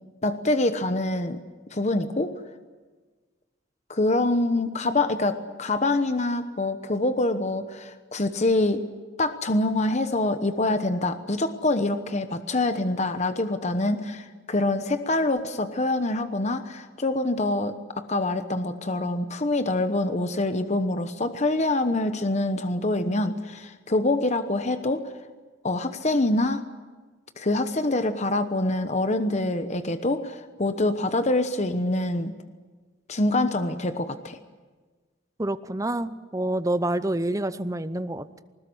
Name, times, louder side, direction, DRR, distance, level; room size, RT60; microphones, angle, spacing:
voice 1, 0.2-1.4 1.7-2.3 3.9-8.8 9.2-25.1 25.6-26.6 27.4-32.3 33.1-34.4, left 2 dB, 35° left, 9 dB, 1.0 m, -25 dB
voice 2, 35.4-38.4, right 1 dB, 15° right, 13 dB, 0.7 m, -27 dB
21.0 x 19.5 x 9.8 m, 1.4 s
head